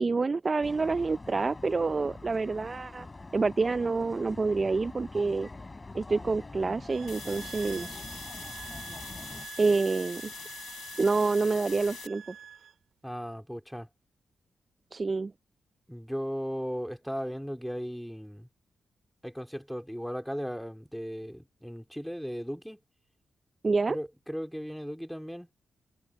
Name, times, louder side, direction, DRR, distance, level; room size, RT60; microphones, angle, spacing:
voice 1, 0.0-3.1 3.3-5.5 5.9-8.0 9.6-10.3 11.0-12.3 14.9-15.3 23.6-24.0, right 4 dB, 45° right, 0.5 m, -27 dB
sound 1, 0.6-9.5, left 3 dB, 35° left, 4.5 m, -45 dB
sound 2, 6.9-12.7, right 8 dB, 75° right, 4.8 m, -46 dB
sound 3, 7.1-12.1, left 10 dB, 80° left, 4.2 m, -44 dB
voice 2, 13.0-13.9 15.9-18.5 19.2-22.8 23.9-25.5, equal, ahead, 3.8 m, -36 dB
supercardioid pair, 40°, 0 cm